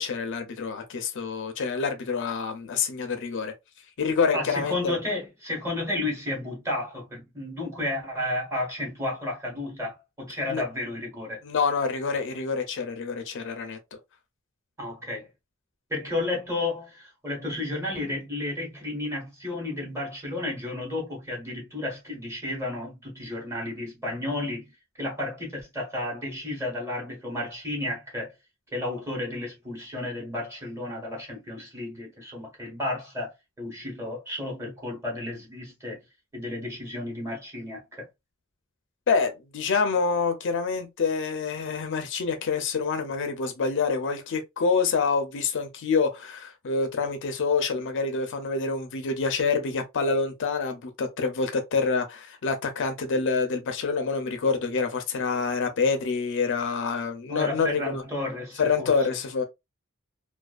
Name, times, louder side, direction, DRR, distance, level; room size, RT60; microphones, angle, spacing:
voice 1, 0.0-3.5 4.0-4.9 10.5-10.6 11.4-13.8 39.1-58.0 58.6-59.4, left 5 dB, 60° left, 0.5 m, -27 dB
voice 2, 4.3-11.4 14.8-15.3 15.9-24.6 25.0-28.3 28.7-36.0 36.3-38.1 57.3-59.1, left 2 dB, 15° right, 1.1 m, -32 dB
2.4 x 2.3 x 2.3 m
head